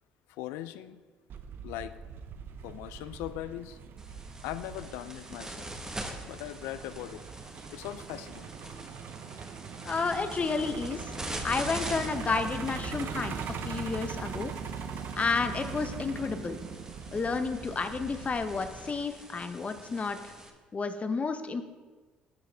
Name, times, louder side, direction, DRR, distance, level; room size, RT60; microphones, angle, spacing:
voice 1, 0.4-1.0 1.6-1.9 2.6-3.8 4.4-5.7 6.3-7.2 7.7-8.5, left 13 dB, 75° left, 14 dB, 0.4 m, -39 dB
Truck, 1.3-19.1, right 6 dB, 60° right, 0.6 m, -41 dB
sound 1, 4.0-20.5, right 1 dB, 15° right, 1.2 m, -44 dB
voice 2, 9.8-11.1 11.4-13.3 13.6-14.5 15.1-16.6 17.1-20.2 20.7-21.6, left 4 dB, 35° left, 9 dB, 0.7 m, -31 dB
sound 2, 10.4-18.4, equal, 85° right, 1.2 m, -50 dB
12.5 x 4.7 x 3.3 m, 1.4 s
hypercardioid pair, 55°, 4 cm